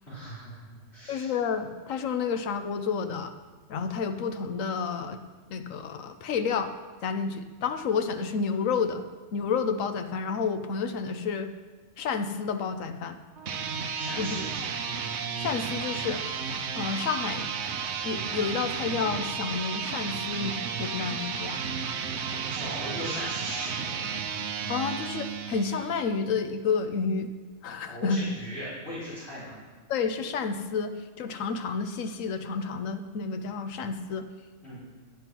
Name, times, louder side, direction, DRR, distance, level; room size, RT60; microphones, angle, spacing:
voice 1, 0.0-1.3 13.9-14.8 22.3-24.2 27.9-29.5 34.6-34.8, equal, 55° left, -10 dB, 4.1 m, -39 dB
voice 2, 1.1-3.3 3.7-5.2 5.5-6.7 7.0-9.0 9.3-11.5 12.0-13.2 14.2-14.4 15.4-16.2 16.7-17.5 18.0-21.6 24.7-27.3 27.6-28.2 29.9-34.3, left 5 dB, 85° left, 8 dB, 1.2 m, -30 dB
sound 1, 13.4-26.1, right 6 dB, 65° right, 1.0 m, -33 dB
10.5 x 7.9 x 6.0 m, 1.3 s
omnidirectional pair, 1.3 m